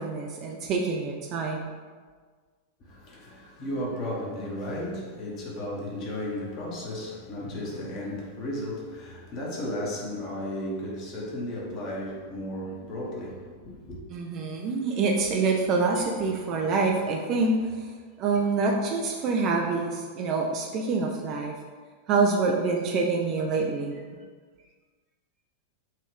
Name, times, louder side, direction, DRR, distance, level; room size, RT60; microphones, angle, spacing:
voice 1, 0.0-1.7 14.1-17.9 18.2-21.5 22.1-24.0, right 4 dB, 35° right, 0.4 m, -26 dB
voice 2, 2.8-14.0, left 1 dB, 40° left, 1.1 m, -34 dB
5.5 x 2.5 x 3.4 m
figure-of-eight pair, 90°, 0 cm